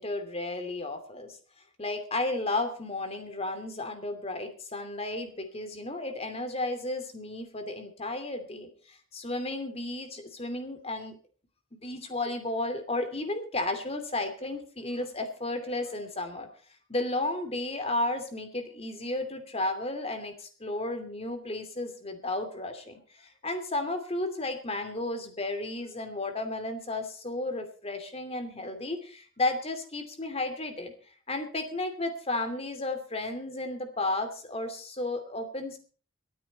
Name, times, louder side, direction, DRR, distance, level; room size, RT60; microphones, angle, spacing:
voice 1, 0.0-1.4 1.8-11.2 11.7-16.5 16.9-30.9 31.3-35.8, left 2 dB, 30° left, 7 dB, 2.7 m, -33 dB
24.5 x 9.4 x 4.2 m, 0.40 s
head